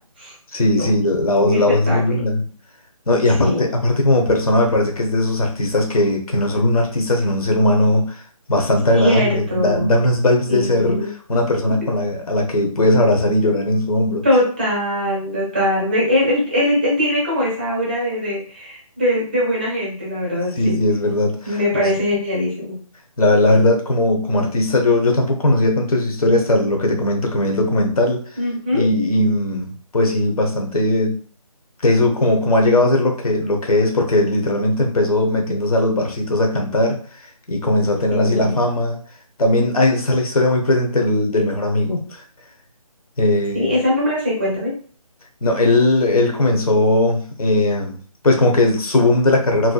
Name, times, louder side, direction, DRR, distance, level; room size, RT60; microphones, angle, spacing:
voice 1, 0.5-2.4 3.1-8.2 8.5-14.2 20.5-21.9 23.2-28.2 28.7-31.2 31.8-37.0 37.5-39.0 39.4-42.2 43.2-43.7 45.4-48.0 48.2-49.7, left 1 dB, 75° left, 2 dB, 0.8 m, -18 dB
voice 2, 1.9-2.2 3.4-3.6 8.9-9.9 10.5-11.1 11.7-11.8 14.2-20.8 21.4-22.8 28.4-28.8 38.1-38.6 43.5-44.7, left 1 dB, 15° right, -5 dB, 0.5 m, -21 dB
2.6 x 2.1 x 2.2 m, 0.43 s
figure-of-eight pair, 170°, 19 cm